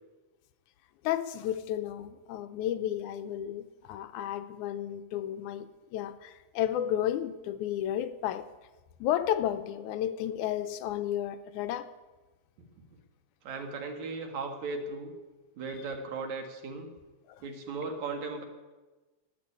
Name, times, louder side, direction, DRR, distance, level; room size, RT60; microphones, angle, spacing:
voice 1, 1.0-8.5 9.0-11.9 17.3-17.4, left 11 dB, 85° left, 2.1 m, -32 dB
voice 2, 13.4-15.1 15.6-16.9 17.4-18.4, right 4 dB, 70° right, 2.9 m, -37 dB
12.0 x 8.7 x 9.8 m
omnidirectional pair, 3.5 m